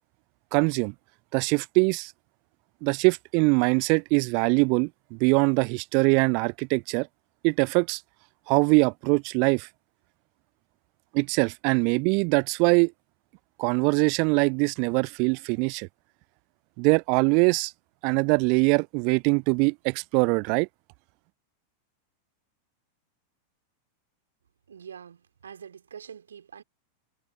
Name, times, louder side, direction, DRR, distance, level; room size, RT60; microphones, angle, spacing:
voice 1, 0.5-0.9 1.3-2.1 2.8-7.1 7.4-8.0 8.5-9.7 11.1-12.9 13.6-15.9 16.8-17.7 18.0-20.7, right 36 dB, 45° right, 0.4 m, -23 dB
voice 2, 24.7-26.6, right 7 dB, 70° right, 4.8 m, -45 dB
figure-of-eight pair, 90°, 0 cm